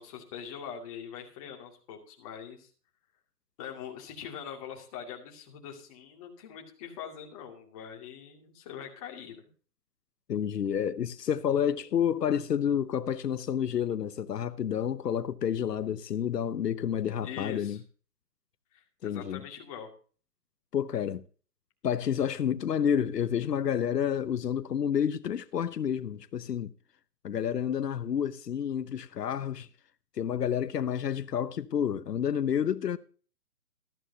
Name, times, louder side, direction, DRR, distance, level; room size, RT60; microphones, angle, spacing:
voice 1, 0.0-2.7 3.6-9.5 17.2-17.8 18.7-19.9, left 8 dB, 20° left, 2.4 m, -43 dB
voice 2, 10.3-17.8 19.0-19.4 20.7-21.2 21.8-26.7 27.2-29.7 30.2-33.0, left 8 dB, 85° left, 0.8 m, -29 dB
13.5 x 13.5 x 2.8 m
hypercardioid pair, 160°, 47 cm